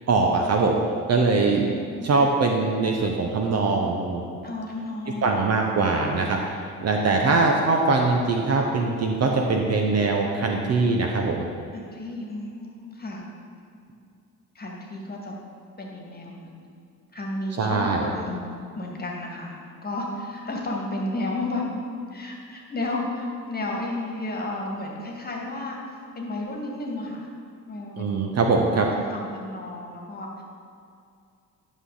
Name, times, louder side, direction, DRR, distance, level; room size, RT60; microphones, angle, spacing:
voice 1, 0.1-0.8 1.1-1.7 2.0-4.2 5.2-11.5 17.6-18.1 28.0-28.9, right 3 dB, 35° right, 1 dB, 0.9 m, -22 dB
voice 2, 1.3-2.4 4.4-5.4 5.7-5.9 7.2-7.4 11.7-13.2 13.9-14.0 14.6-15.3 15.8-16.7 17.1-21.7 22.1-25.8 26.2-27.3 27.7-30.4, left 2 dB, 20° left, -1 dB, 1.9 m, -33 dB
11.0 x 6.3 x 4.0 m, 2.4 s
figure-of-eight pair, 50°, 46 cm